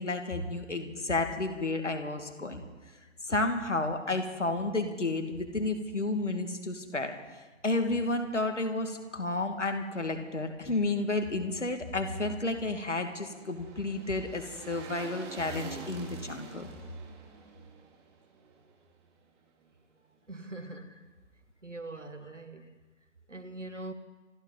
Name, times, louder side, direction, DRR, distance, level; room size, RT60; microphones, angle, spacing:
voice 1, 0.0-2.6 3.2-7.1 7.6-16.7, left 2 dB, 75° left, 6 dB, 2.2 m, -31 dB
sound 1, 12.2-19.3 19.6-19.7, right 6 dB, 20° right, 2.1 m, -47 dB
voice 2, 20.3-20.9 21.6-22.7 23.3-23.9, right 2 dB, 85° right, 9 dB, 1.6 m, -42 dB
28.0 x 12.0 x 4.0 m, 1.2 s
figure-of-eight pair, 135°, 36 cm